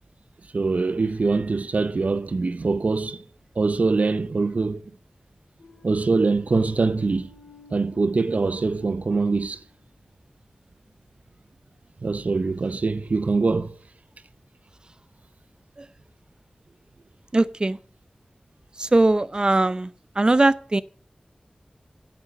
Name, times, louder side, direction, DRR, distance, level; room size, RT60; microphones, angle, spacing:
voice 1, 0.5-3.2 3.6-4.8 5.8-7.3 7.7-9.6 12.0-13.8, right 3 dB, 75° right, 0.7 m, -23 dB
sound 1, 5.6-9.9, left 3 dB, 85° left, 3.3 m, -53 dB
voice 2, 17.3-17.8 18.8-20.8, right 2 dB, 35° right, 0.5 m, -20 dB
10.5 x 7.7 x 8.7 m
wide cardioid pair, 75°, 3 cm